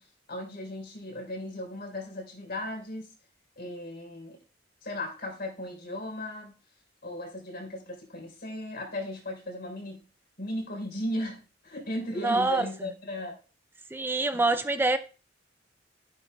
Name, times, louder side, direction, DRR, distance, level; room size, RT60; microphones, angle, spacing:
voice 1, 0.0-3.1 3.6-4.4 4.8-6.5 7.0-10.0 10.4-13.4 14.3-14.6, left 1 dB, 55° left, 3.7 m, -36 dB
voice 2, 12.2-12.7 13.9-15.0, right 2 dB, 10° right, 0.4 m, -25 dB
14.5 x 8.8 x 2.3 m
head